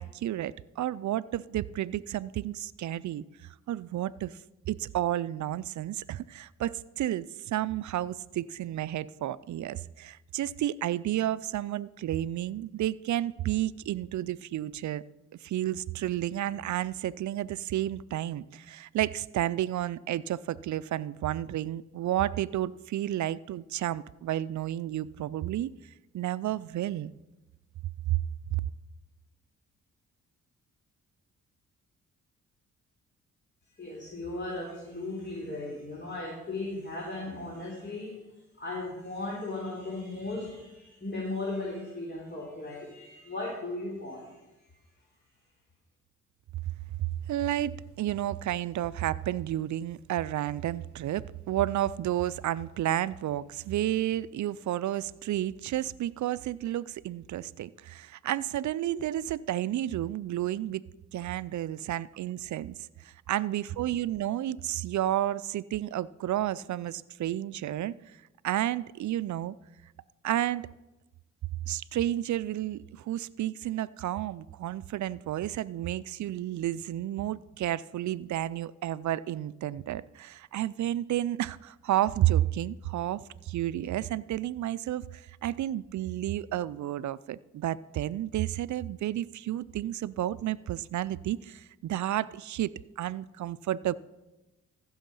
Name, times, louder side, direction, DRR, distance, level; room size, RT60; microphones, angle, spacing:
voice 1, 0.0-3.2 3.7-4.4 4.7-15.0 15.4-25.7 26.1-27.1 28.1-28.2 28.5-28.6 47.3-60.8 61.1-62.8 63.0-67.9 68.4-69.6 70.2-70.7 71.7-93.9, right 13 dB, 60° right, 0.5 m, -31 dB
voice 2, 33.8-38.2 38.6-44.4, left 2 dB, 35° left, 3.6 m, -36 dB
14.5 x 6.4 x 5.5 m
supercardioid pair, 60°, 33 cm